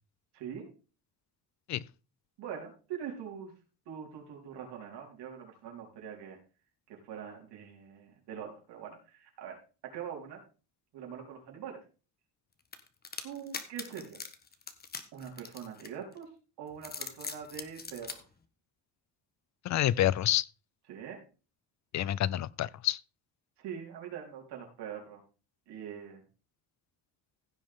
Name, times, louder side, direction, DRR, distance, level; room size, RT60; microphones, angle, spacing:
voice 1, 0.3-0.7 2.4-3.5 3.9-6.4 6.9-9.6 9.8-10.4 10.9-11.8 13.2-14.2 15.1-16.3 16.6-18.2 20.9-21.2 23.6-25.2 25.7-26.2, right 8 dB, 80° right, 4.4 m, -43 dB
sound 1, 12.7-16.2 16.7-18.2, left 5 dB, 25° left, 1.3 m, -41 dB
voice 2, 19.6-20.5 21.9-23.0, left 12 dB, 45° left, 0.5 m, -28 dB
16.0 x 7.4 x 3.7 m
cardioid pair, 145°, 40 cm